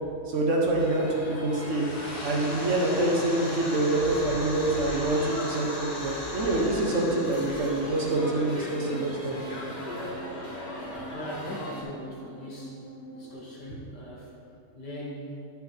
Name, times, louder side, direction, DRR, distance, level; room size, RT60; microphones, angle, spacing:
voice 1, 0.3-1.9 2.2-9.3, right 2 dB, 50° right, -2 dB, 1.3 m, -26 dB
sound 1, 0.8-11.8, left 1 dB, 30° left, 1.3 m, -39 dB
sound 2, 1.6-10.2, left 1 dB, 45° left, 2.4 m, -39 dB
sound 3, 6.0-13.3, right 2 dB, 10° left, 1.2 m, -46 dB
voice 2, 11.1-12.8 13.1-14.3 14.7-15.4, equal, 90° left, -5 dB, 2.4 m, -39 dB
9.9 x 5.7 x 4.5 m, 2.7 s
omnidirectional pair, 1.8 m